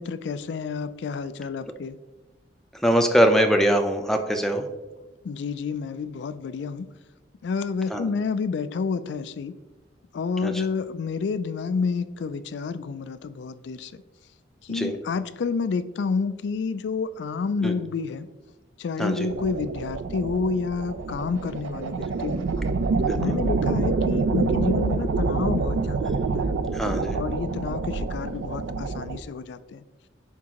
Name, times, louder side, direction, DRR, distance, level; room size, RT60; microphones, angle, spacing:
voice 1, 0.0-2.0 5.2-6.9 7.4-9.5 10.1-14.0 14.6-18.3 18.8-22.4 23.2-26.5 27.1-29.8, left 5 dB, 70° left, 13 dB, 0.3 m, -29 dB
voice 2, 2.8-4.7 7.9-8.1 10.4-10.6 14.7-15.0 17.6-17.7 19.0-19.3 22.1-22.2 23.1-23.4 26.0-26.2 26.7-27.2, equal, ahead, 5 dB, 0.4 m, -23 dB
sound 1, 19.3-29.2, right 4 dB, 90° right, 0.4 m, -27 dB
10.0 x 3.6 x 2.9 m, 1.2 s
head